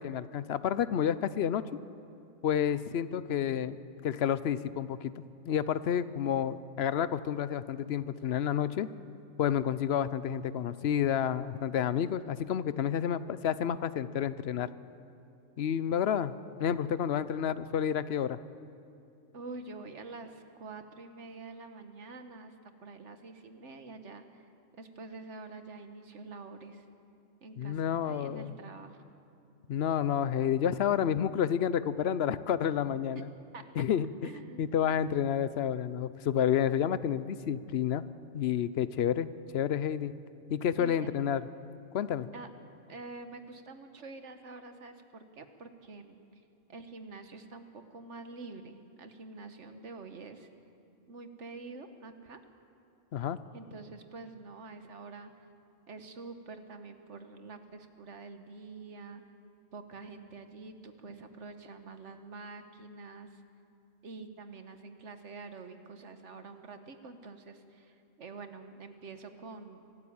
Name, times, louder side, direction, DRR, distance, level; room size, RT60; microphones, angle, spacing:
voice 1, 0.0-1.6 2.4-3.8 4.0-8.9 9.4-14.7 15.6-16.3 16.6-18.4 27.6-28.5 29.7-33.3 33.8-34.3 34.6-38.0 38.3-40.1 40.5-41.4 41.9-42.3 53.1-53.4, left 9 dB, 60° left, 15 dB, 0.8 m, -30 dB
voice 2, 19.3-24.2 24.8-26.8 27.4-29.0 33.1-33.2 33.5-33.7 34.2-34.6 40.8-41.1 42.3-42.5 42.9-46.4 46.7-50.5 51.1-52.4 53.5-55.3 55.9-59.2 59.7-63.4 64.0-69.8, right 3 dB, 60° right, 8 dB, 1.5 m, -47 dB
24.5 x 12.5 x 8.7 m, 2.7 s
omnidirectional pair, 1.4 m